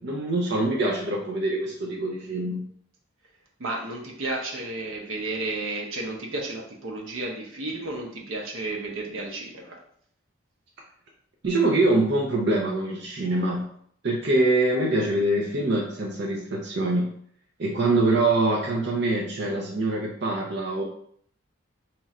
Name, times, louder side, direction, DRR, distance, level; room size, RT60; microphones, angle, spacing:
voice 1, 0.0-2.6 11.4-13.6 14.0-17.1 17.6-20.8, right 2 dB, 55° right, -1 dB, 0.5 m, -24 dB
voice 2, 3.6-9.8, right 2 dB, 85° right, 0 dB, 0.8 m, -32 dB
3.0 x 2.4 x 4.1 m, 0.64 s
head